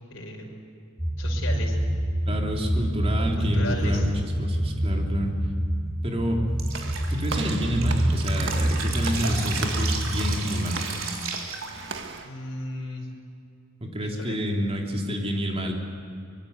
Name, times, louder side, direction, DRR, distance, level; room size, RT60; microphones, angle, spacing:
voice 1, 0.1-0.7 1.2-1.8 2.2-2.6 3.4-4.1 12.2-13.1 14.0-14.4, left 1 dB, 65° left, 0 dB, 5.6 m, -35 dB
sound 1, 1.0-10.4, right 1 dB, 10° right, 1.4 m, -27 dB
voice 2, 2.3-5.4 6.0-6.4 7.1-10.8 13.8-15.7, equal, 30° right, 1 dB, 3.5 m, -28 dB
Drip, 6.6-12.2, right 5 dB, 85° right, 3.9 m, -34 dB
Walk footsteps / Slam, 6.7-12.3, right 4 dB, 60° right, 1.8 m, -38 dB
25.0 x 23.0 x 8.3 m, 2.6 s
head